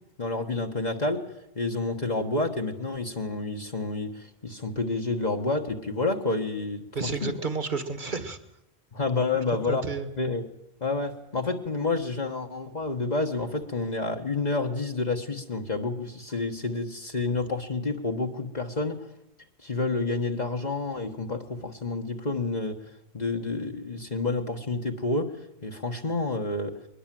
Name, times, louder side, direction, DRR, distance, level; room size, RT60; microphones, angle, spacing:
voice 1, 0.2-1.2 1.5-7.3 8.9-10.4 10.8-19.1 19.6-22.8 23.1-25.4 25.6-26.8, left 3 dB, 40° left, 2 dB, 1.6 m, -29 dB
voice 2, 6.9-8.4 9.5-10.1, right 4 dB, 50° right, 10 dB, 2.0 m, -31 dB
22.0 x 20.0 x 7.7 m, 0.83 s
omnidirectional pair, 1.1 m